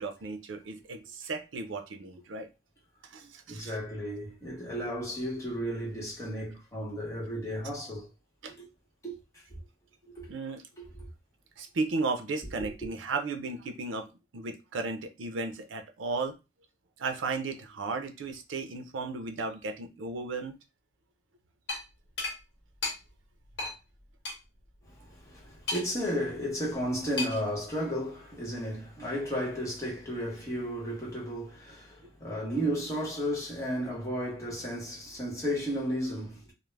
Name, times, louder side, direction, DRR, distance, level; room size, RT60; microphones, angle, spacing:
voice 1, 0.0-2.5 3.1-3.8 8.4-8.5 10.3-10.6 11.6-14.1 14.3-16.3 17.0-20.5, right 3 dB, 85° right, 0.5 m, -35 dB
voice 2, 3.2-8.1 8.6-8.7 9.0-9.4 10.1-10.3 10.8-10.9 12.6-12.7 24.9-36.5, equal, 15° left, 0.9 m, -34 dB
sound 1, 21.7-21.8 22.2-22.4 22.8-23.0 23.6-23.7 24.2-24.4 25.7-26.1 27.2-27.5, left 3 dB, 65° left, 0.9 m, -33 dB
2.3 x 2.0 x 3.1 m
head